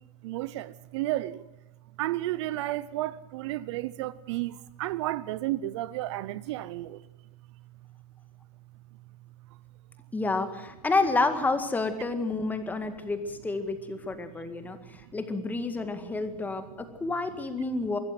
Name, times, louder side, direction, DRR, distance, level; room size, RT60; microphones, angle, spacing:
voice 1, 0.2-1.4 2.0-7.0 15.7-16.1, right 16 dB, 50° right, 0.7 m, -32 dB
voice 2, 10.1-18.0, left 3 dB, 10° left, 1.9 m, -29 dB
24.0 x 14.5 x 7.8 m
hypercardioid pair, 140°, 19 cm